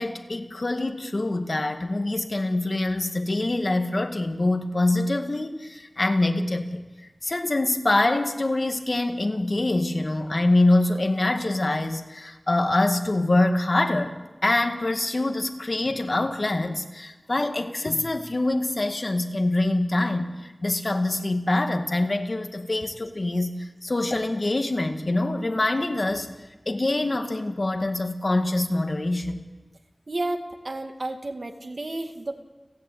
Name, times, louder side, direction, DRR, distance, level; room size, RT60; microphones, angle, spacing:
voice 1, 0.0-6.8 7.2-14.2 14.4-26.3 26.7-29.4, left 2 dB, 55° left, 6 dB, 2.0 m, -25 dB
voice 2, 30.1-32.4, right 2 dB, 65° right, 5 dB, 2.1 m, -32 dB
30.0 x 11.0 x 8.7 m, 1.1 s
wide cardioid pair, 60°, 0 cm